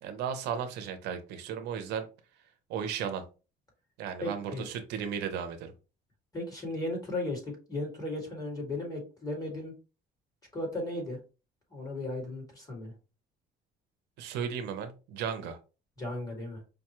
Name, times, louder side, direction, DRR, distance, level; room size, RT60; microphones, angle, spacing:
voice 1, 0.0-2.1 2.7-3.2 4.0-5.7 14.2-15.6, right 7 dB, 85° right, 8 dB, 0.7 m, -35 dB
voice 2, 4.2-4.7 6.3-9.7 10.5-11.2 11.7-12.9 16.0-16.6, left 2 dB, 20° left, 0 dB, 2.0 m, -36 dB
5.1 x 2.2 x 3.0 m, 0.31 s
cardioid pair, 110°, 17 cm